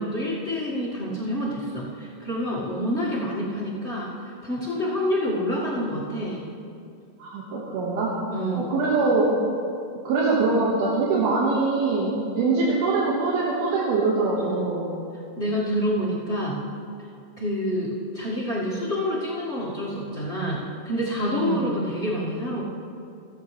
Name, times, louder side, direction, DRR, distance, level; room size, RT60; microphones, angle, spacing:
voice 1, 0.0-6.4 8.3-8.7 14.4-14.6 15.4-16.6 17.4-22.6, equal, 80° left, -8 dB, 0.6 m, -27 dB
voice 2, 7.2-8.2 8.6-9.3 10.0-15.0 21.3-21.7, right 3 dB, 85° right, -5 dB, 3.4 m, -23 dB
27.5 x 9.2 x 3.2 m, 2.5 s
omnidirectional pair, 4.3 m